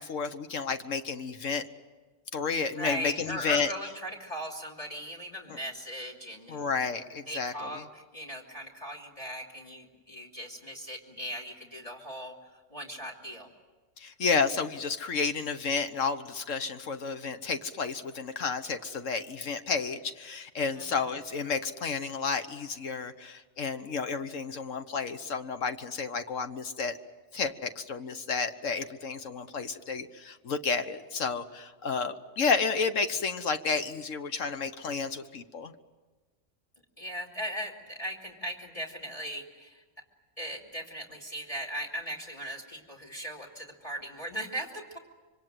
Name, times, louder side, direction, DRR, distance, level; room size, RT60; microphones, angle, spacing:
voice 1, 0.0-1.6 2.3-3.7 5.5-5.6 6.5-7.8 14.0-27.0 27.3-35.7, left 5 dB, 80° left, 8 dB, 1.5 m, -31 dB
voice 2, 2.8-6.6 7.3-13.5 20.8-21.1 37.0-39.8 40.4-45.0, equal, 30° left, 1 dB, 2.9 m, -38 dB
26.0 x 24.5 x 7.7 m, 1.3 s
omnidirectional pair, 1.3 m